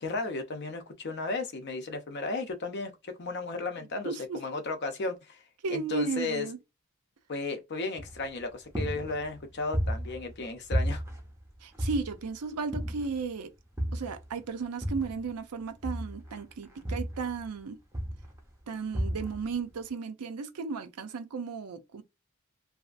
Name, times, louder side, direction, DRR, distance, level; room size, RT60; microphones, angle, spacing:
voice 1, 0.0-5.4 5.7-6.5 7.3-11.0, left 3 dB, 50° left, 0.5 m, -34 dB
voice 2, 4.0-4.4 5.6-6.6 11.6-13.5 13.9-17.8 18.7-22.0, right 4 dB, 90° right, 0.5 m, -34 dB
sound 1, 8.0-8.4 8.7-10.4 10.7-12.3 12.7-13.3 13.8-15.3 15.8-17.6 17.9-18.4 18.9-19.5, equal, 10° right, 0.5 m, -33 dB
2.7 x 2.4 x 2.4 m
head